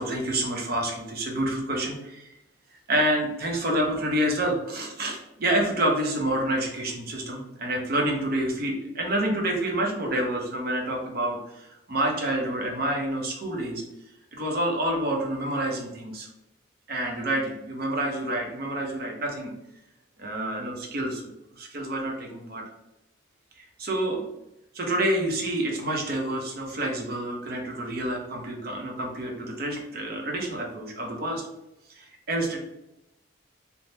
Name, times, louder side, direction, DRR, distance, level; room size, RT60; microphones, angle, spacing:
voice 1, 0.0-2.3 2.9-13.8 14.3-16.3 16.9-19.5 20.2-21.2 21.5-22.6 23.6-24.3 24.7-31.4 31.9-32.6, right 1 dB, 50° right, 0 dB, 0.6 m, -28 dB
3.3 x 2.0 x 2.7 m, 0.89 s
head